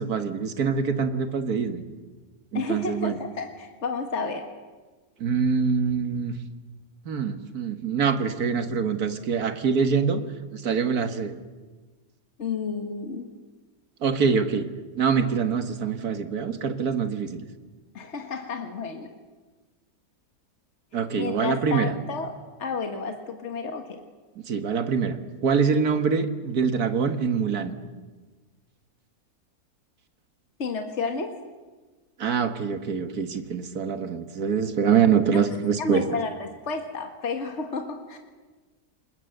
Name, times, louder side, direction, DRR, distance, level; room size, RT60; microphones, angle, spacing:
voice 1, 0.0-1.8 2.5-3.1 5.2-6.3 7.1-10.2 10.5-11.3 14.0-14.7 15.0-17.5 20.9-21.9 24.5-27.7 32.2-36.1, right 6 dB, 85° right, 8 dB, 2.0 m, -24 dB
voice 2, 2.5-4.5 12.4-13.3 17.9-19.1 21.2-22.3 22.6-24.0 30.6-31.3 35.3-35.4 35.8-38.2, left 4 dB, 50° left, 4 dB, 1.9 m, -31 dB
28.0 x 20.5 x 7.9 m, 1.3 s
omnidirectional pair, 1.6 m